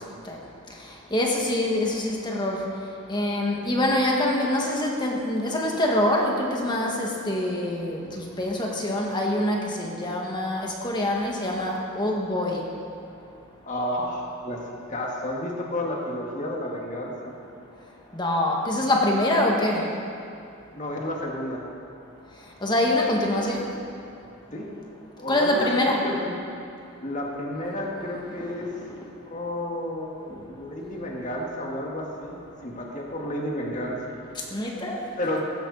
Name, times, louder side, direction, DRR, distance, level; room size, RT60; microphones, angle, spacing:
voice 1, 0.8-2.6 3.1-12.7 18.1-19.9 22.6-23.7 25.3-26.0 28.4-28.5 30.3-30.4 34.4-35.0, left 1 dB, 20° left, -1 dB, 1.7 m, -25 dB
voice 2, 13.6-17.3 20.7-21.7 24.5-24.7 25.2-26.4 27.0-28.8 29.3-34.2 35.2-35.4, left 1 dB, 35° left, -2 dB, 1.9 m, -31 dB
16.0 x 15.5 x 4.1 m, 2.5 s
head